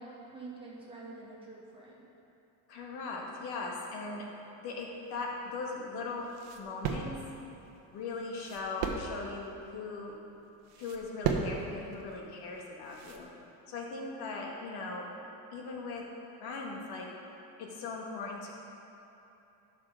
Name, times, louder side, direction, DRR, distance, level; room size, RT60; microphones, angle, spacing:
voice 1, 0.0-2.1, right 3 dB, 10° right, -6 dB, 1.9 m, -47 dB
voice 2, 2.7-4.2 4.6-6.3 6.6-7.1 7.9-10.2 10.8-13.3 13.7-15.1 15.5-16.0 16.4-17.1 17.6-18.5, left 3 dB, 60° left, -1 dB, 1.8 m, -39 dB
sound 1, 5.0-13.3, right 6 dB, 60° right, 1.0 m, -38 dB
12.0 x 6.1 x 3.8 m, 3.0 s
cardioid pair, 120°, 43 cm